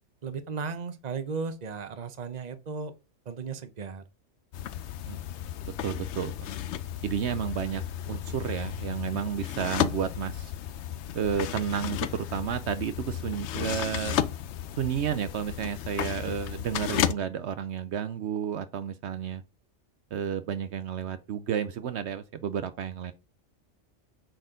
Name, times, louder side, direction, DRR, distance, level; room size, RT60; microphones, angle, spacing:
voice 1, 0.2-2.9 3.3-4.0, right 5 dB, 40° right, 0.9 m, -35 dB
sound 1, 4.5-17.1, left 10 dB, 70° left, 0.9 m, -33 dB
voice 2, 5.6-6.5 7.0-7.8 8.1-10.5 11.1-14.2 14.7-19.4 20.1-23.1, right 8 dB, 70° right, 0.9 m, -31 dB
7.9 x 4.3 x 5.1 m
omnidirectional pair, 1.2 m